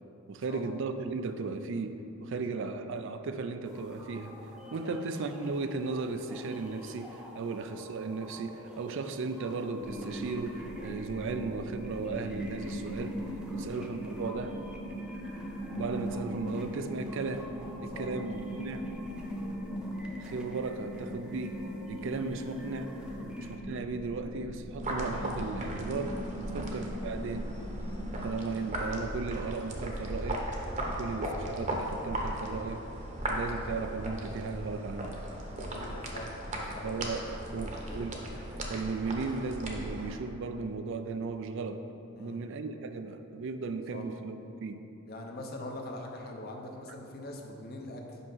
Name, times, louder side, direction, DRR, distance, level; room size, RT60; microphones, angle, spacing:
voice 1, 0.3-4.4 4.7-13.3 13.5-14.6 15.7-17.5 17.8-18.9 20.2-21.6 21.9-22.9 23.4-27.5 28.2-30.5 30.9-32.9 33.3-35.2 36.8-38.3 38.7-41.8 42.2-44.9, right 4 dB, 65° right, 8 dB, 0.4 m, -36 dB
sound 1, 3.6-23.6, left 1 dB, 5° right, 0.7 m, -50 dB
sound 2, 9.8-28.4, equal, 85° left, 1.6 m, -40 dB
sound 3, 24.8-40.2, right 1 dB, 35° right, 0.9 m, -37 dB
voice 2, 35.6-38.0 42.1-42.4 43.9-44.0 45.1-48.2, left 1 dB, 50° left, 1 dB, 0.8 m, -44 dB
5.5 x 5.4 x 5.5 m, 2.9 s
head